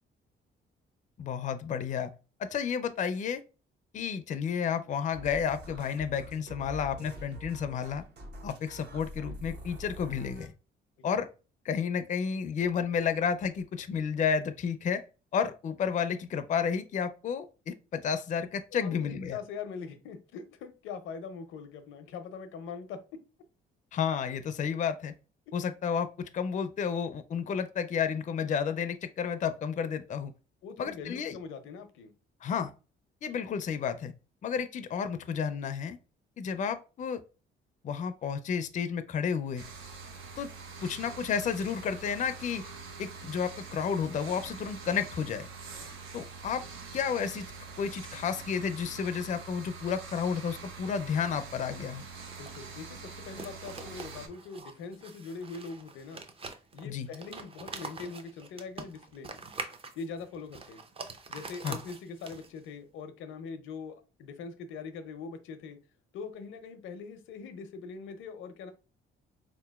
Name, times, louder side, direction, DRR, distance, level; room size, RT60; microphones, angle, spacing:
voice 1, 1.2-2.1 2.4-3.4 3.9-8.0 8.4-10.5 11.0-11.3 11.6-15.0 15.3-19.4 23.9-25.1 25.5-30.3 30.8-31.4 32.4-32.7 33.2-34.1 34.4-36.0 36.4-37.2 37.8-39.6 40.4-40.5 40.8-42.6 43.0-45.5 46.1-46.6 46.9-47.5 47.8-52.1 56.8-57.1 61.6-61.8, left 7 dB, 40° left, 0.4 m, -31 dB
sound 1, 5.1-10.5, equal, 55° right, 0.9 m, -45 dB
voice 2, 18.7-23.0 30.6-32.1 52.4-56.2 56.7-59.4 60.0-60.8 61.3-65.8 66.1-68.7, left 5 dB, 85° left, 0.6 m, -42 dB
sound 2, 39.6-54.3, right 4 dB, 85° right, 0.7 m, -45 dB
sound 3, 52.1-62.7, right 3 dB, 30° right, 0.5 m, -45 dB
3.8 x 2.9 x 2.2 m
cardioid pair, 90°, 20 cm